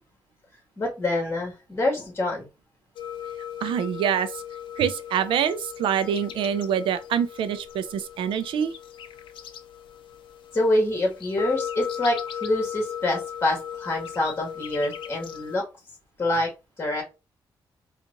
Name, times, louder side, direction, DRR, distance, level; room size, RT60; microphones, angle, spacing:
voice 1, 0.8-2.5 10.5-15.6 16.2-16.5 16.8-17.0, left 1 dB, 25° left, 1.8 m, -26 dB
sound 1, 3.0-15.6, left 9 dB, 75° left, 0.4 m, -37 dB
voice 2, 3.6-4.4 4.8-8.7, right 8 dB, 90° right, 0.4 m, -25 dB
4.6 x 2.4 x 2.5 m
cardioid pair, 110°, 8 cm